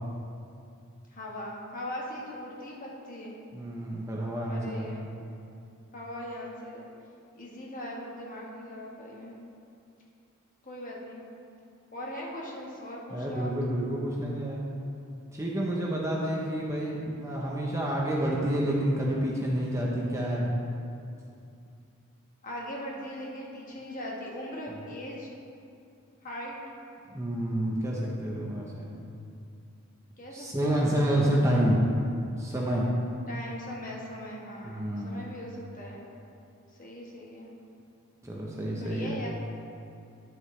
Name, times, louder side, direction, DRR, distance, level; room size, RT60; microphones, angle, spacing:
voice 1, 1.1-3.3 4.5-5.1 5.9-6.9 7.3-9.4 10.6-11.2 11.9-13.7 22.4-25.3 26.2-26.6 30.2-30.9 33.3-36.0 36.8-37.5 38.8-39.3, left 1 dB, 35° left, -3 dB, 1.3 m, -40 dB
voice 2, 3.5-5.1 13.1-14.6 15.3-20.6 27.1-28.9 30.3-31.8 32.4-32.9 34.6-35.3 38.2-39.2, right 1 dB, 15° right, -3 dB, 0.7 m, -29 dB
10.0 x 7.9 x 3.2 m, 2.6 s
head